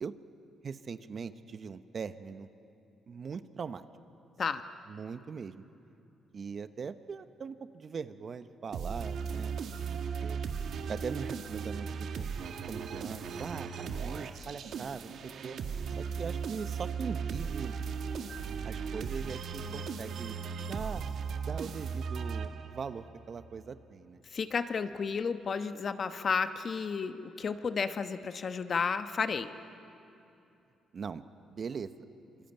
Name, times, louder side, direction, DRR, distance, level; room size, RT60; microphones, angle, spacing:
voice 1, 0.6-2.5 3.1-3.8 4.9-5.6 6.3-9.6 10.2-10.4 10.9-12.3 12.7-15.6 16.0-17.7 18.6-21.0 21.4-24.2 30.9-31.2 31.5-31.9, right 6 dB, 45° right, 11 dB, 1.0 m, -41 dB
sound 1, 8.7-23.0, right 6 dB, 65° right, 1.6 m, -37 dB
voice 2, 24.3-29.5, left 5 dB, 45° left, 9 dB, 1.1 m, -32 dB
26.0 x 23.0 x 9.0 m, 2.7 s
cardioid pair, 90°, 0 cm